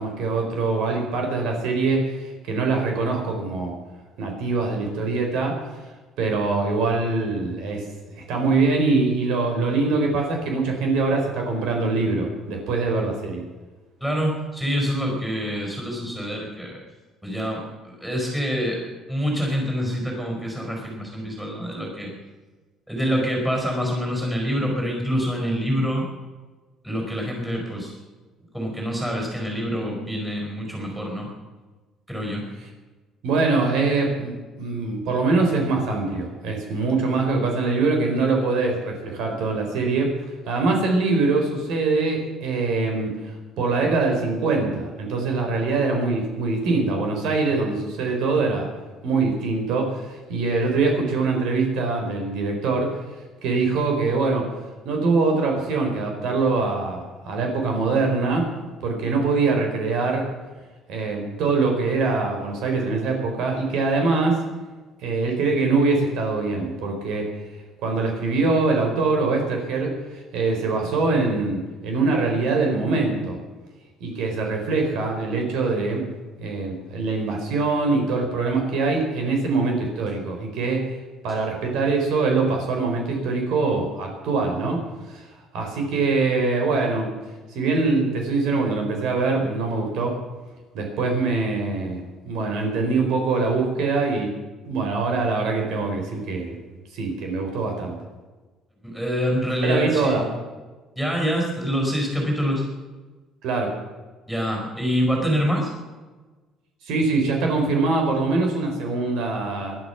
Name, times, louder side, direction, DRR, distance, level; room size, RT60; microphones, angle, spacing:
voice 1, 0.0-3.7 4.2-5.6 6.2-7.8 8.3-13.4 33.2-40.2 40.5-48.7 49.0-53.0 53.4-54.4 54.8-58.5 58.8-60.3 60.9-64.4 65.0-67.3 67.8-73.4 74.0-76.0 76.4-80.8 81.2-85.3 85.5-87.1 87.5-90.2 90.7-94.3 94.6-98.0 99.6-100.2 103.4-103.7 106.8-109.8, right 3 dB, 65° right, 2 dB, 4.2 m, -23 dB
voice 2, 14.0-16.8 17.2-18.8 19.1-22.1 22.9-26.1 26.8-27.9 28.5-31.3 32.1-32.5 98.8-100.3 101.0-102.6 104.3-105.7, equal, 5° right, 0 dB, 4.9 m, -26 dB
20.5 x 11.5 x 5.8 m, 1.3 s
cardioid pair, 170°, 0 cm